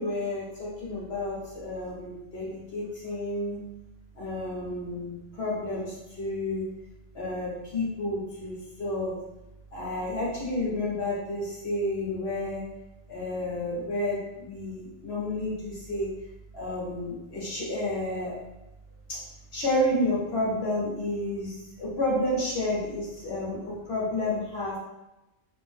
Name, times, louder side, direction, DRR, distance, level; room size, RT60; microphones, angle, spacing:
voice 1, 0.0-3.6 4.1-6.7 7.1-9.2 9.7-12.6 13.1-16.1 16.5-18.4 19.1-19.2 19.5-24.8, left 1 dB, 55° left, -6 dB, 1.0 m, -30 dB
2.6 x 2.1 x 3.2 m, 0.97 s
omnidirectional pair, 1.4 m